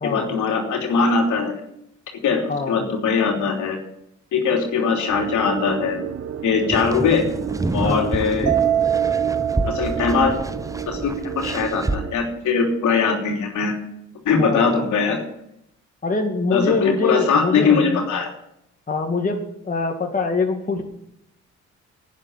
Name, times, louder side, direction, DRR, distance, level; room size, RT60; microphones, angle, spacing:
voice 1, 0.0-1.5 2.2-3.8 4.3-6.0 6.4-7.2 7.7-8.5 9.6-10.3 10.9-13.8 14.2-15.2 16.5-18.3, left 5 dB, 75° left, 2 dB, 3.2 m, -21 dB
voice 2, 2.5-2.8 7.8-8.1 14.4-14.8 16.0-18.0 18.9-20.8, left 3 dB, 30° left, 2 dB, 2.2 m, -24 dB
sound 1, 5.1-12.1, right 8 dB, 50° right, 1.0 m, -32 dB
sound 2, 6.7-12.0, right 2 dB, 10° right, 0.8 m, -28 dB
Mallet percussion, 8.5-10.9, right 10 dB, 90° right, 1.2 m, -23 dB
11.0 x 9.5 x 9.6 m, 0.77 s
cardioid pair, 90°, 30 cm